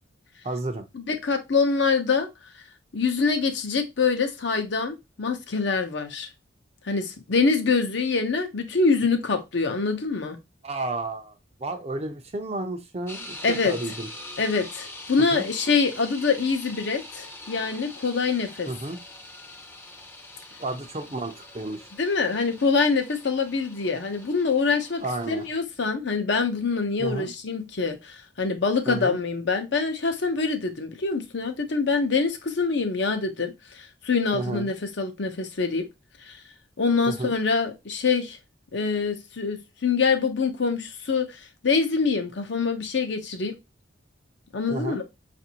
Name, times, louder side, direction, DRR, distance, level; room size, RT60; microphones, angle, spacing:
voice 1, 0.4-0.8 10.6-14.1 15.3-15.4 18.7-19.0 20.6-21.9 25.0-25.5 27.0-27.3 28.9-29.2 34.3-34.7 37.1-37.3 44.7-45.0, right 2 dB, 30° right, 0.5 m, -32 dB
voice 2, 0.9-2.3 2.9-6.3 6.9-10.4 13.4-13.7 14.4-18.7 22.0-25.0 25.3-35.8 36.3-36.4 36.8-38.4 38.7-43.5 44.5-45.0, left 4 dB, 65° left, 0.7 m, -25 dB
sound 1, 13.1-25.6, left 2 dB, 15° left, 0.6 m, -43 dB
5.1 x 2.6 x 2.8 m
head